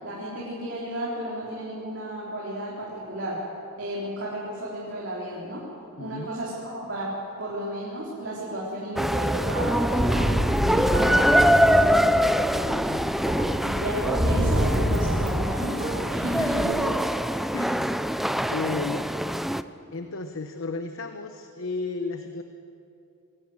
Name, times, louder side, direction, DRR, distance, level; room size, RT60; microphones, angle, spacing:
voice 1, 0.0-3.4 3.8-5.6 6.0-10.3 10.7-12.1 13.6-16.8, right 1 dB, 55° right, -6 dB, 3.8 m, -33 dB
voice 2, 6.0-6.3 12.7-13.0 16.4-16.7 17.5-17.9 18.5-19.1 19.9-22.4, left 3 dB, 60° left, 7 dB, 0.9 m, -33 dB
sound 1, 9.0-19.6, equal, ahead, 0.4 m, -24 dB
sound 2, 9.6-15.5 15.8-16.7, equal, 25° right, 2.8 m, -28 dB
22.0 x 17.5 x 8.0 m, 2.7 s
head